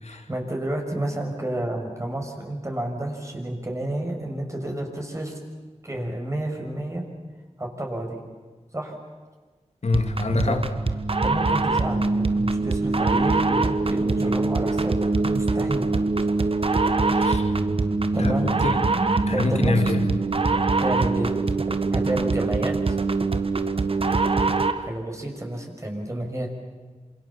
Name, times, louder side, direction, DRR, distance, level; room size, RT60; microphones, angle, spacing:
voice 1, 0.1-5.4 5.8-7.0 7.6-8.2 8.7-9.0 10.3-10.6 11.2-15.0 15.2-15.9 18.1-18.5 19.3-19.9 20.8-21.3 21.9-23.0 24.8-26.5, right 1 dB, 25° right, 1 dB, 6.2 m, -30 dB
voice 2, 9.8-10.6 17.1-17.5 18.2-18.8 19.3-20.1, left 3 dB, 60° left, 6 dB, 2.6 m, -26 dB
sound 1, 9.9-24.9, right 3 dB, 50° right, 1.5 m, -23 dB
27.5 x 27.5 x 7.2 m, 1.4 s
wide cardioid pair, 65°, 12 cm